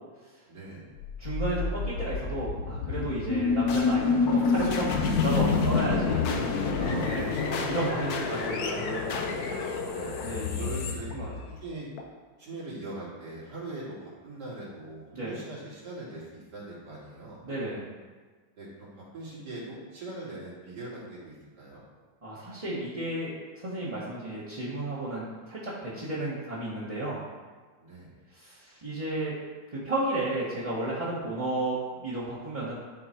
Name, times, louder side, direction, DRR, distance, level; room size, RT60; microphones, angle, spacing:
voice 1, 0.5-0.9 6.7-7.7 9.8-10.1 10.6-11.1 11.6-11.9 12.4-17.4 18.6-21.8 27.8-28.1, right 2 dB, 65° right, -7 dB, 2.9 m, -41 dB
sound 1, 1.0-12.0, left 4 dB, 65° left, 1.2 m, -28 dB
voice 2, 1.2-6.3 7.0-7.3 7.7-9.0 10.2-10.6 11.1-11.3 15.1-15.4 17.4-17.8 22.2-27.2 28.3-29.3 29.7-32.7, right 2 dB, 20° right, -10 dB, 1.2 m, -33 dB
11.0 x 3.9 x 4.4 m, 1.4 s
omnidirectional pair, 2.0 m